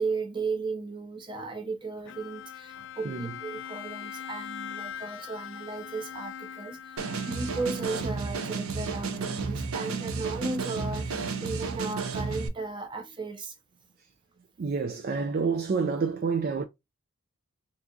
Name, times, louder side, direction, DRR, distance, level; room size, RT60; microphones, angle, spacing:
voice 1, 0.0-13.5, right 3 dB, 20° right, 0.7 m, -35 dB
Bowed string instrument, 2.1-8.5, left 8 dB, 55° left, 0.3 m, -42 dB
sound 1, 7.0-12.5, right 4 dB, 75° right, 0.8 m, -32 dB
voice 2, 14.6-16.6, right 5 dB, 45° right, 0.3 m, -28 dB
3.8 x 2.8 x 2.3 m
head